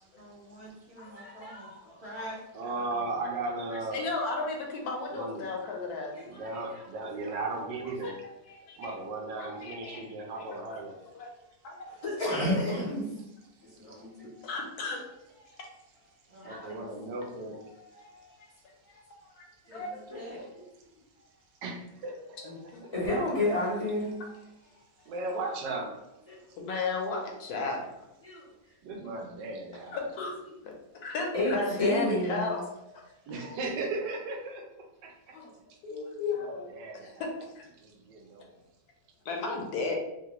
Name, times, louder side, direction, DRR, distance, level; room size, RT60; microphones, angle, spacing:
voice 1, 0.1-1.7 2.0-3.2 16.3-17.0 19.7-20.4, equal, 50° right, -6 dB, 0.9 m, -45 dB
voice 2, 1.0-2.0 6.2-6.4 6.7-6.8 7.2-7.3 12.0-13.0 13.6-14.3 16.4-16.8 19.7-19.8 20.1-20.2 22.9-24.2 26.3-26.4 28.2-28.4 31.3-32.5 35.3-35.5, left 1 dB, 35° left, -6 dB, 0.6 m, -31 dB
voice 3, 2.5-4.1 5.1-5.5 6.3-8.2 8.8-11.0 16.4-17.7 21.6-22.5 22.8-22.9 25.1-26.0 28.8-30.0 33.3-35.4 36.4-37.2 37.8-38.5, right 2 dB, 90° right, 2 dB, 1.3 m, -36 dB
voice 4, 3.9-6.1 8.0-8.1 8.5-8.9 9.4-10.0 10.4-10.8 11.1-11.3 11.6-11.8 14.0-14.1 14.4-15.6 16.3-16.5 17.7-18.5 19.1-19.4 19.7-20.2 22.4-22.8 26.6-27.8 29.0-29.1 29.9-30.4 30.6-30.7 31.0-32.6 33.3-33.4 35.8-36.7 37.0-37.3 37.5-37.6 39.2-40.0, left 3 dB, 70° left, 1 dB, 1.1 m, -34 dB
3.2 x 2.3 x 2.9 m, 0.87 s
omnidirectional pair, 1.8 m